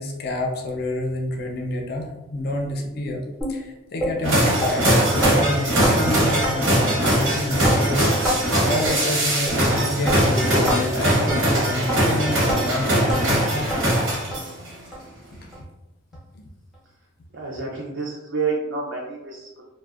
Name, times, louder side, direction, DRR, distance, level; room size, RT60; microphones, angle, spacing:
voice 1, 0.0-3.2 3.5-8.1 8.6-13.9 16.3-16.4, left 1 dB, 50° left, 1 dB, 0.4 m, -28 dB
sound 1, 3.4-3.5 4.0-4.1 4.6-4.7 5.2-5.3 5.8-6.0 6.4-6.5 7.0-7.1 7.6-7.8 8.2-8.4 8.9-9.0 9.5-9.6 10.1-10.2 10.7-10.8 11.3-11.4 11.9-12.0 12.5-12.6 13.1-13.2 13.7-13.8 14.3-14.4 14.9-15.0 15.5-15.6 16.1-16.2, equal, ahead, 0.5 m, -25 dB
sound 2, 4.2-14.7, right 1 dB, 85° right, 0.8 m, -21 dB
voice 2, 17.3-19.6, right 4 dB, 60° right, -3 dB, 0.4 m, -29 dB
2.5 x 2.1 x 2.3 m, 0.98 s
head